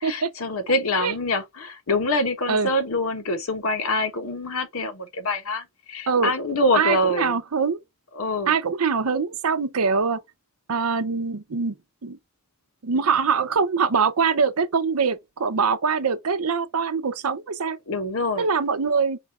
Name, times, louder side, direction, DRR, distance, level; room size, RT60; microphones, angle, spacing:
voice 1, 0.0-7.4 8.1-8.5 17.9-18.5, left 2 dB, 70° left, 1.0 m, -25 dB
voice 2, 6.7-7.8 8.5-10.2 10.7-11.7 12.0-12.2 12.8-17.8 18.4-19.2, right 5 dB, 80° right, 0.7 m, -23 dB
4.2 x 2.4 x 4.2 m
head